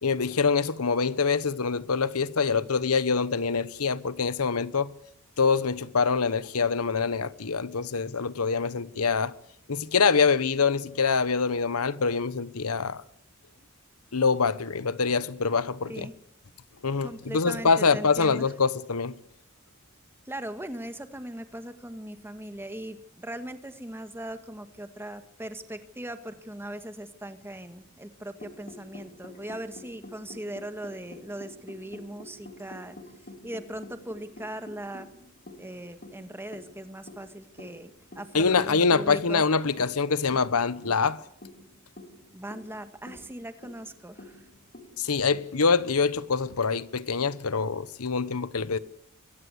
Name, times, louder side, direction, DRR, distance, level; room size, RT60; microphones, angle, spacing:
voice 1, 0.0-4.9 5.4-9.3 9.7-13.0 14.1-16.1 16.8-19.2 38.3-41.2 45.0-48.8, left 5 dB, 85° left, 1.0 m, -25 dB
voice 2, 17.0-18.4 20.2-33.0 33.4-35.1 35.6-39.4 42.3-44.4, right 1 dB, 10° right, 1.7 m, -39 dB
sound 1, 28.4-45.4, left 1 dB, 40° left, 2.8 m, -48 dB
23.0 x 16.5 x 8.0 m
head